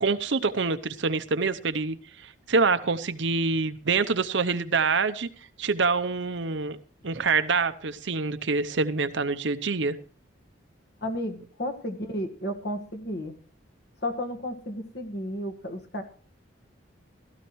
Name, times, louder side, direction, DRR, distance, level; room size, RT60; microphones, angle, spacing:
voice 1, 0.0-2.0 2.2-5.3 5.6-6.8 7.0-10.0, right 4 dB, 65° right, 11 dB, 0.8 m, -26 dB
voice 2, 11.0-13.3 14.0-16.0, left 1 dB, 55° left, 4 dB, 1.6 m, -33 dB
16.0 x 13.5 x 3.1 m, 0.43 s
head